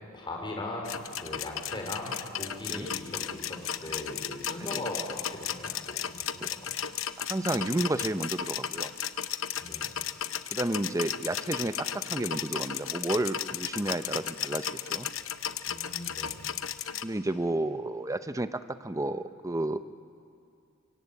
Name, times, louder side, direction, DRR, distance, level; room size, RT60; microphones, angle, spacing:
voice 1, 0.1-0.9 1.2-6.7 9.6-9.9 15.7-16.4, left 2 dB, 25° left, 0 dB, 4.7 m, -39 dB
sound 1, 0.9-17.0, left 9 dB, 70° left, 0.8 m, -35 dB
voice 2, 7.2-8.9 10.5-15.1 17.0-19.8, right 1 dB, 15° right, 11 dB, 0.7 m, -31 dB
25.0 x 23.5 x 8.6 m, 2.5 s
head